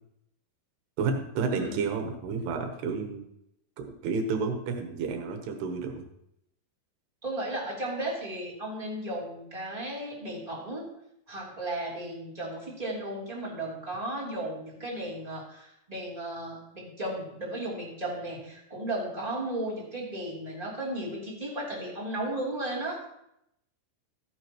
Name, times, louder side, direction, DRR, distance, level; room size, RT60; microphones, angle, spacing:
voice 1, 1.0-3.2 3.9-6.1, right 4 dB, 80° right, 4 dB, 3.1 m, -30 dB
voice 2, 7.2-10.9 11.3-23.1, right 1 dB, 10° right, -6 dB, 2.3 m, -35 dB
14.0 x 9.7 x 3.0 m, 0.79 s
omnidirectional pair, 4.8 m